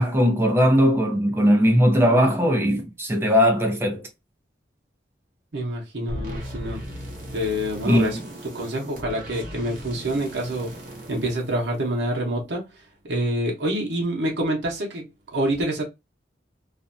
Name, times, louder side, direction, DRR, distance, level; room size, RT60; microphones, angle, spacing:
voice 1, 0.0-4.1 7.9-8.2, equal, 15° right, 0.5 m, -19 dB
voice 2, 5.5-6.8 7.3-8.2 8.5-10.7 11.1-12.7 13.0-15.8, right 1 dB, 80° right, 0.7 m, -26 dB
sound 1, 6.1-12.2, equal, 50° right, 0.9 m, -38 dB
2.5 x 2.1 x 2.5 m
head